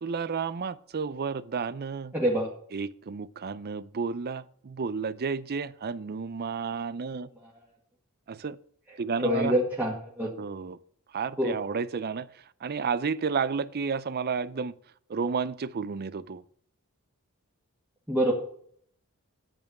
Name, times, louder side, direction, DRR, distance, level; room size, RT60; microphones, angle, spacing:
voice 1, 0.0-2.1 2.7-7.3 8.3-8.6 9.0-9.6 10.4-10.8 11.1-12.3 12.6-14.7 15.1-16.4, right 5 dB, 45° right, 0.5 m, -31 dB
voice 2, 2.1-2.5 7.4-7.5 9.2-10.3 11.4-11.6 18.1-18.3, equal, 10° right, 1.9 m, -26 dB
8.9 x 8.9 x 5.9 m
head